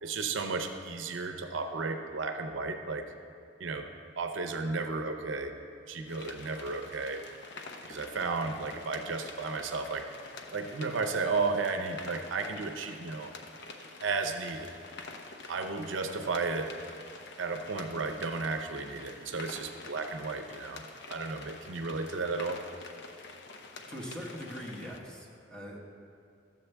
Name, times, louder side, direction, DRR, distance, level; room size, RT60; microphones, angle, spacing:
voice 1, 0.0-3.1 3.6-3.9 4.2-5.6 5.9-7.2 7.9-10.1 10.5-13.3 14.0-14.7 15.5-16.7 17.4-20.8 21.1-22.6, right 4 dB, 85° right, 6 dB, 0.6 m, -33 dB
sound 1, 6.1-25.0, left 3 dB, 65° left, 0.7 m, -47 dB
voice 2, 23.9-25.8, equal, 5° left, -3 dB, 1.2 m, -42 dB
13.0 x 7.6 x 3.4 m, 2.5 s
head